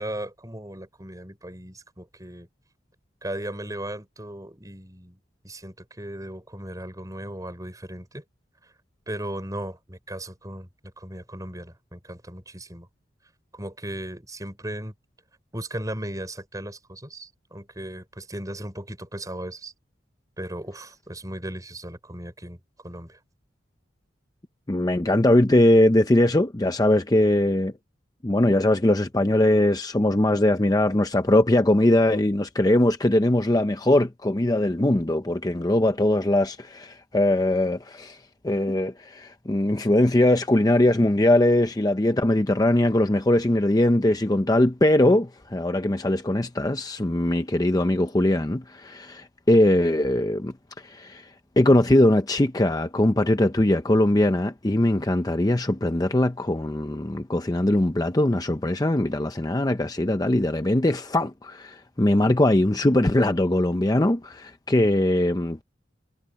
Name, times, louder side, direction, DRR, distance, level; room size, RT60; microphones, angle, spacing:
voice 1, 0.0-2.5 3.2-5.2 5.4-8.2 8.6-8.7 9.1-10.7 11.0-12.9 13.5-14.9 15.5-19.7 20.4-22.6 22.8-23.2, right 1 dB, 20° right, 5.4 m, -36 dB
voice 2, 24.7-27.7 28.2-38.2 38.4-50.5 50.8-51.3 51.6-65.6, left 1 dB, 20° left, 0.7 m, -21 dB
head